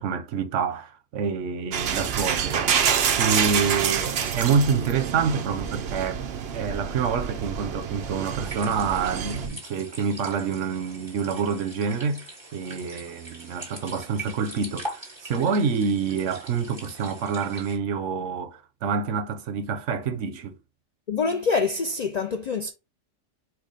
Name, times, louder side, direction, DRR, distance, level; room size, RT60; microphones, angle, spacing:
voice 1, 0.0-2.7 3.2-6.2 6.5-12.2 12.5-20.6, right 5 dB, 85° right, 1.1 m, -27 dB
sound 1, 1.7-9.5, right 7 dB, 65° right, 0.8 m, -27 dB
sound 2, 8.4-17.8, right 1 dB, 25° right, 1.8 m, -41 dB
voice 2, 21.1-22.7, left 4 dB, 60° left, 0.4 m, -25 dB
4.7 x 2.3 x 4.8 m
omnidirectional pair, 1.2 m